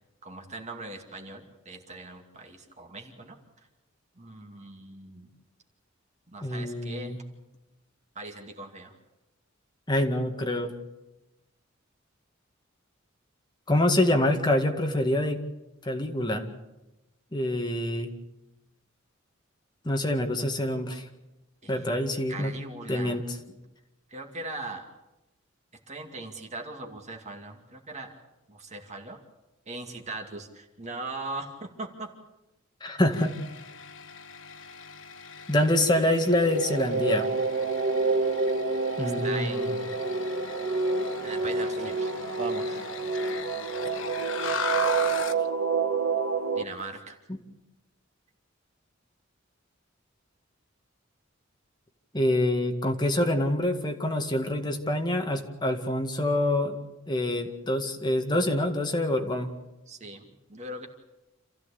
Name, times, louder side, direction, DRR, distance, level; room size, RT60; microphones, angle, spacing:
voice 1, 0.2-3.4 4.2-5.3 6.3-7.1 8.2-8.9 21.6-23.2 24.1-24.9 25.9-28.1 28.5-29.2 29.7-32.1 32.9-33.0 39.0-40.0 41.2-42.8 46.6-47.2 59.9-60.9, right 2 dB, 35° right, 4 dB, 2.4 m, -40 dB
voice 2, 6.4-7.2 9.9-10.7 13.7-15.4 15.8-16.4 17.3-18.1 19.8-21.1 21.7-22.5 22.9-23.4 32.8-33.3 35.5-37.3 39.0-39.7 47.3-47.4 52.1-56.8 57.1-59.5, left 1 dB, 20° left, 4 dB, 2.0 m, -26 dB
sound 1, 33.1-45.5, left 5 dB, 70° left, 1.3 m, -38 dB
sound 2, 36.0-46.6, right 4 dB, 70° right, 1.4 m, -28 dB
27.5 x 15.0 x 8.5 m, 0.98 s
head